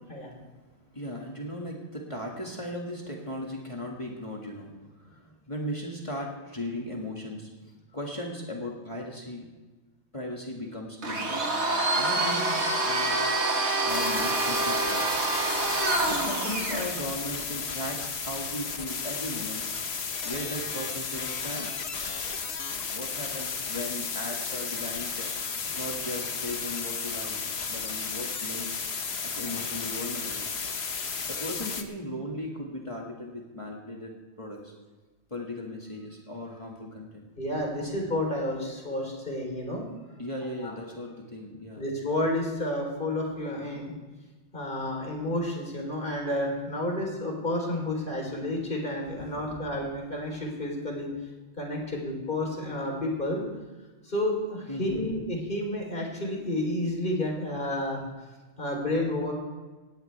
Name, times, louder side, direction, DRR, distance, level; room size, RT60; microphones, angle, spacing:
voice 1, 0.9-9.5 10.1-11.4 11.9-13.2 13.8-15.0 16.1-19.6 20.2-21.7 22.7-27.4 27.7-28.8 29.2-30.5 31.3-34.7 35.3-37.3 37.8-37.9 40.2-41.9 49.2-49.4 54.7-55.1, left 1 dB, 30° left, -1 dB, 2.1 m, -37 dB
Domestic sounds home sounds, 11.0-16.9, right 2 dB, 80° right, 2.1 m, -26 dB
sound 1, 13.9-31.8, left 5 dB, 70° left, 1.4 m, -34 dB
voice 2, 37.4-39.8 40.6-40.7 41.8-43.9 44.5-51.1 51.6-53.4 54.0-58.0 58.6-59.3, left 1 dB, 50° left, 0 dB, 4.0 m, -30 dB
18.5 x 15.5 x 3.4 m, 1.3 s
omnidirectional pair, 1.1 m